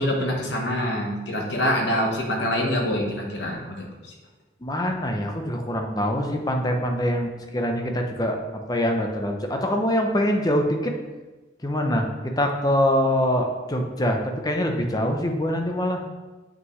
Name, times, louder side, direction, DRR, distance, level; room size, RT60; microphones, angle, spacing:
voice 1, 0.0-3.9, left 1 dB, 60° left, 0 dB, 1.2 m, -25 dB
voice 2, 4.6-8.4 8.7-10.9 11.6-12.1 12.4-16.0, equal, 20° left, 3 dB, 0.6 m, -24 dB
7.6 x 5.7 x 3.1 m, 1.2 s
head